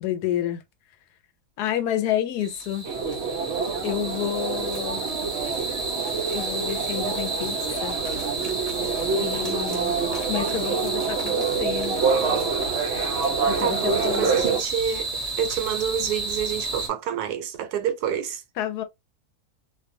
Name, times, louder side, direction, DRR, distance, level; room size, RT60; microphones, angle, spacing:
voice 1, 0.0-0.6 1.6-2.9 3.8-5.1 6.3-8.0 9.2-9.9 10.3-12.0 13.5-14.3 18.6-18.8, left 11 dB, 80° left, 1.2 m, -29 dB
sound 1, 2.4-16.9, right 3 dB, 30° right, 0.9 m, -31 dB
sound 2, 2.8-14.6, right 5 dB, 60° right, 0.7 m, -27 dB
voice 2, 9.3-9.8 13.6-15.1 15.4-18.4, right 8 dB, 80° right, 1.1 m, -28 dB
2.5 x 2.2 x 2.6 m
omnidirectional pair, 1.7 m